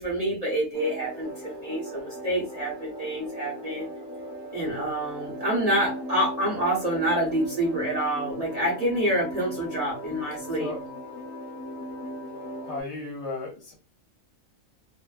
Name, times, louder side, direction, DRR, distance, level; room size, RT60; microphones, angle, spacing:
voice 1, 0.0-3.9 4.5-10.8, right 1 dB, 35° right, -5 dB, 0.8 m, -27 dB
sound 1, 0.7-12.8, equal, 25° left, 0.9 m, -38 dB
voice 2, 12.6-13.7, left 3 dB, 60° left, 1 dB, 0.9 m, -35 dB
2.5 x 2.1 x 2.3 m, 0.31 s
omnidirectional pair, 1.4 m